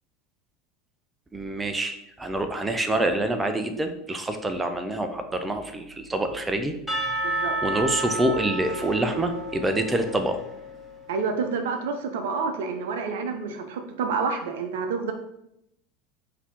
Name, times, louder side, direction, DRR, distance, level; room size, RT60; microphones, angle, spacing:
voice 1, 1.3-6.7 7.3-10.4, right 1 dB, 15° right, 7 dB, 0.5 m, -26 dB
Percussion / Church bell, 6.9-11.0, right 1 dB, 5° left, 1.4 m, -31 dB
voice 2, 7.2-7.6 11.1-15.1, right 5 dB, 70° right, 5 dB, 0.6 m, -28 dB
4.0 x 2.8 x 4.5 m, 0.81 s
hypercardioid pair, 80°, 0 cm